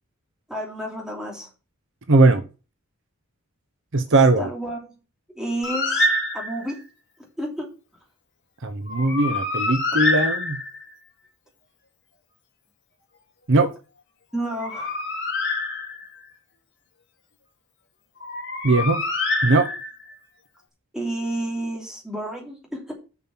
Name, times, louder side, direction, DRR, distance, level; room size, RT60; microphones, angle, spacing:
voice 1, 0.5-1.5 4.4-4.8 5.3-6.1 6.3-6.8 7.4-7.7 14.3-14.9 20.9-22.9, right 1 dB, 5° right, 2.8 m, -30 dB
voice 2, 2.1-2.4 3.9-4.5 8.6-10.6 13.5-13.7 18.6-19.0 19.4-19.7, right 2 dB, 60° right, 0.9 m, -19 dB
Bird, 5.6-6.8 8.9-10.9 14.4-16.2 18.2-20.1, left 2 dB, 55° left, 2.8 m, -26 dB
7.3 x 6.2 x 5.9 m
head